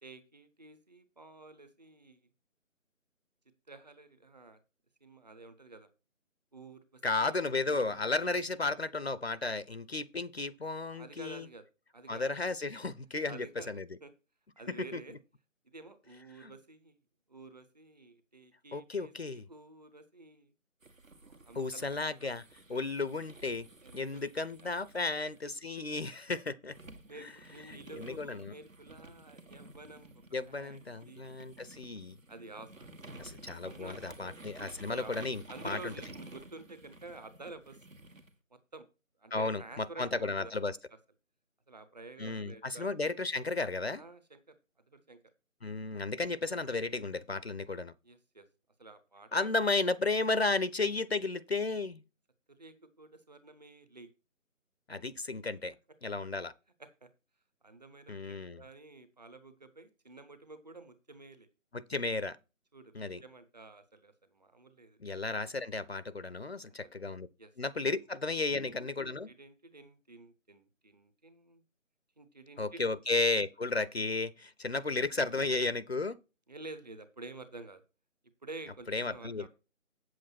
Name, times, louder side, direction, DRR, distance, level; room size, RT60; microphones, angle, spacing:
voice 1, 0.0-2.3 3.7-4.6 5.0-5.9 6.5-7.4 7.7-8.3 10.9-11.7 11.9-12.2 13.3-13.7 14.0-14.1 14.6-15.2 15.6-17.0 17.3-20.5 21.2-22.2 22.7-23.1 23.8-25.3 27.1-30.8 31.1-31.3 32.3-32.9 33.4-35.1 35.5-37.8 38.5-38.8 39.2-40.5 41.7-42.9 44.0-44.5 44.9-45.2 48.0-48.5 48.8-49.5 52.5-54.1 56.8-57.1 57.6-61.5 62.7-65.0 66.7-66.9 67.4-67.5 68.4-71.6 72.2-72.9 76.5-77.8 78.4-79.5, right 3 dB, 30° right, 1.0 m, -50 dB
voice 2, 7.0-11.4 12.1-13.8 14.8-15.0 16.4-16.5 18.7-19.4 21.5-22.4 22.7-23.7 23.9-26.7 27.7-28.5 30.3-32.2 33.2-35.4 35.6-35.9 39.3-40.7 42.2-44.0 45.6-47.9 49.3-52.0 54.9-55.7 56.0-56.5 58.1-58.6 61.7-62.4 62.9-63.2 65.0-67.3 67.6-69.3 72.6-76.2 78.9-79.5, left 3 dB, 50° left, 0.6 m, -33 dB
sound 1, 20.8-26.2 26.7-38.3, right 2 dB, 70° right, 1.8 m, -52 dB
8.3 x 7.8 x 4.3 m
figure-of-eight pair, 155°, 41 cm